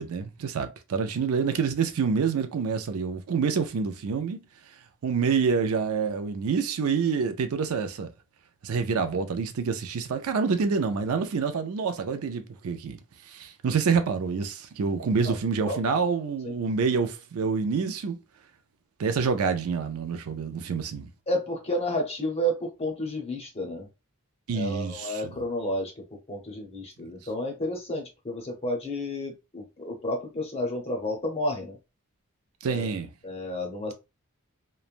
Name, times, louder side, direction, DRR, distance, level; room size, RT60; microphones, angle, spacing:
voice 1, 0.0-4.4 5.0-8.1 8.6-13.0 13.2-18.2 19.0-21.1 24.5-25.3 32.6-33.1, right 5 dB, 70° right, 0.4 m, -27 dB
voice 2, 21.3-23.9 24.5-31.8 32.7-32.9 33.2-33.9, equal, 25° left, 0.7 m, -31 dB
3.1 x 2.0 x 2.4 m
head